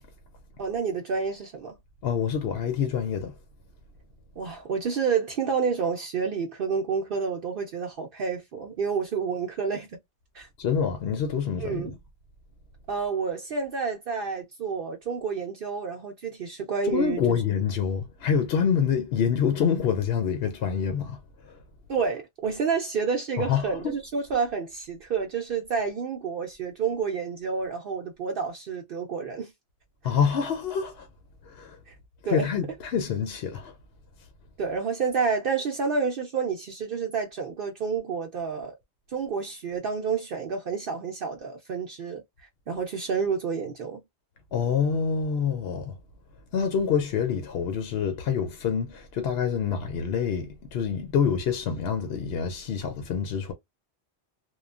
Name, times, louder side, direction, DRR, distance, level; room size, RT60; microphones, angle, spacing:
voice 1, 0.6-1.8 4.4-10.0 10.3-10.5 11.6-11.9 12.9-17.2 21.9-29.5 31.9-32.0 32.2-32.5 34.6-38.8 39.1-42.2 42.7-44.0, right 5 dB, 60° right, 0.7 m, -29 dB
voice 2, 2.0-3.4 10.6-11.9 16.8-21.6 23.4-23.9 30.0-31.1 31.4-31.8 32.3-33.7 44.5-46.0 46.5-53.5, left 7 dB, 70° left, 0.9 m, -26 dB
3.1 x 2.2 x 2.3 m
omnidirectional pair, 1.1 m